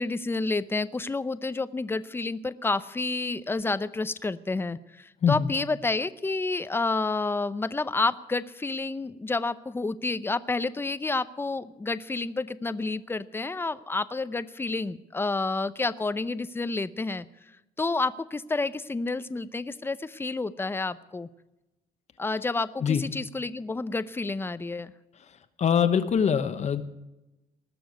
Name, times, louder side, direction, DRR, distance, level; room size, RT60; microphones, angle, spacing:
voice 1, 0.0-17.3 17.8-21.3 22.2-24.9, left 3 dB, 15° left, 15 dB, 0.6 m, -29 dB
voice 2, 25.6-26.8, left 7 dB, 45° left, 9 dB, 1.1 m, -23 dB
19.5 x 7.0 x 9.3 m, 0.98 s
cardioid pair, 115°, 16 cm